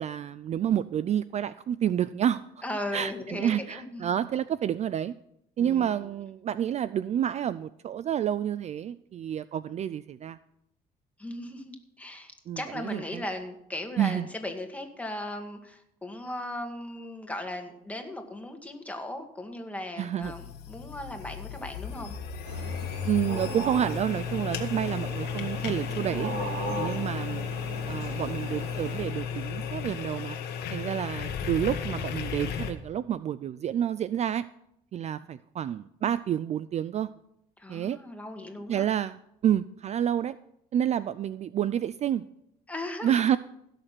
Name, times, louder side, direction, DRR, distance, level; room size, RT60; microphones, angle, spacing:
voice 1, 0.0-2.4 2.9-5.1 5.6-10.4 12.5-13.2 14.0-14.3 20.0-20.3 23.0-26.3 26.8-27.5 27.9-30.4 30.7-34.4 34.9-37.1 37.7-38.0 38.7-40.4 40.7-42.2 43.0-43.4, right 10 dB, 40° right, 16 dB, 0.4 m, -29 dB
voice 2, 2.6-4.1 5.6-5.9 11.2-22.2 37.6-38.9 42.7-43.2, left 1 dB, 10° left, 4 dB, 2.0 m, -37 dB
sound 1, 20.2-32.7, left 7 dB, 75° left, 1.5 m, -34 dB
sound 2, 22.4-29.0, right 2 dB, 90° right, 2.9 m, -38 dB
16.0 x 6.6 x 5.9 m, 0.78 s
cardioid pair, 110°, 17 cm